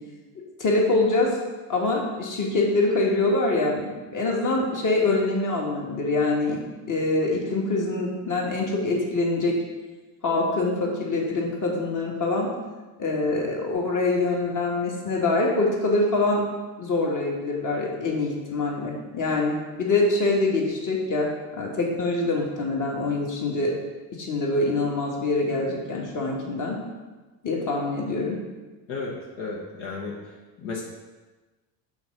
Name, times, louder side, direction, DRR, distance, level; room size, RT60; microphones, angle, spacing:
voice 1, 0.6-1.4 1.7-6.6 6.9-9.5 10.2-12.5 13.0-16.5 16.8-23.7 24.2-26.8 27.4-28.4, left 2 dB, 40° left, -1 dB, 1.7 m, -24 dB
voice 2, 29.4-30.3 30.6-30.8, left 4 dB, 70° left, -2 dB, 1.2 m, -33 dB
5.8 x 3.9 x 5.3 m, 1.2 s
supercardioid pair, 80°, 49 cm